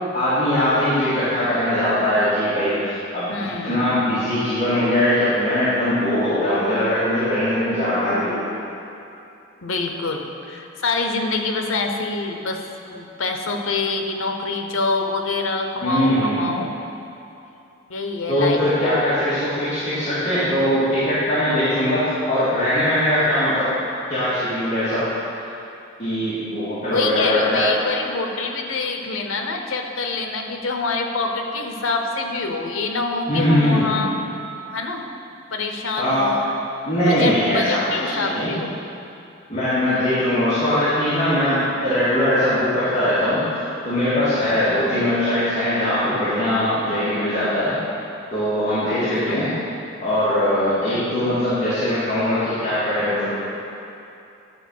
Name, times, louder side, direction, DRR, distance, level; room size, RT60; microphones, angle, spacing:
voice 1, 0.1-3.3 3.6-8.4 15.8-16.6 18.3-23.7 24.1-25.1 25.3-25.5 26.0-27.7 33.3-34.0 36.0-36.4 36.8-38.6 39.5-47.7 48.3-49.5 50.0-53.3, left 1 dB, 35° left, -13 dB, 2.2 m, -21 dB
voice 2, 3.3-3.9 9.6-16.7 17.9-18.6 26.9-34.1 34.7-35.1 35.5-36.5 37.0-38.8 44.4-44.8 48.8-49.0 49.3-49.4 50.9-51.3, left 3 dB, 85° left, 4 dB, 0.9 m, -26 dB
11.0 x 4.5 x 6.4 m, 2.8 s
head